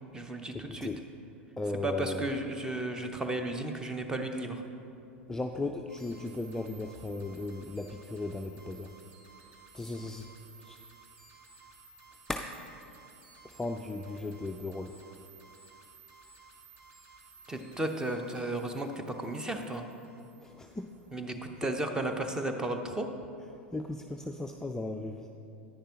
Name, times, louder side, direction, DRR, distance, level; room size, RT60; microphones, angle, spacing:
voice 1, 0.1-0.9 1.8-4.6 17.5-19.9 21.1-23.1, right 1 dB, 10° right, 6 dB, 0.8 m, -34 dB
voice 2, 1.6-2.2 5.3-8.9 9.7-10.3 10.7-10.8 12.3-12.5 13.6-14.9 20.6-20.9 23.7-25.3, left 2 dB, 10° left, 4 dB, 0.4 m, -36 dB
sound 1, 5.9-21.7, right 4 dB, 45° right, 1.5 m, -57 dB
10.0 x 9.6 x 2.9 m, 2.7 s
figure-of-eight pair, 85°, 6 cm